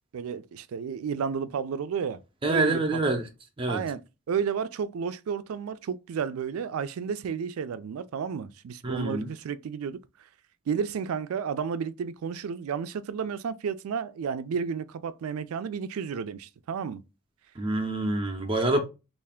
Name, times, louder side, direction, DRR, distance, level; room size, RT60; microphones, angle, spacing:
voice 1, 0.1-2.2 2.5-2.8 3.7-4.0 4.3-10.0 10.7-17.0, right 6 dB, 90° right, 0.4 m, -32 dB
voice 2, 2.4-3.2 3.6-3.8 8.8-9.3 17.6-18.8, right 2 dB, 25° right, 0.5 m, -26 dB
3.3 x 2.5 x 3.5 m
head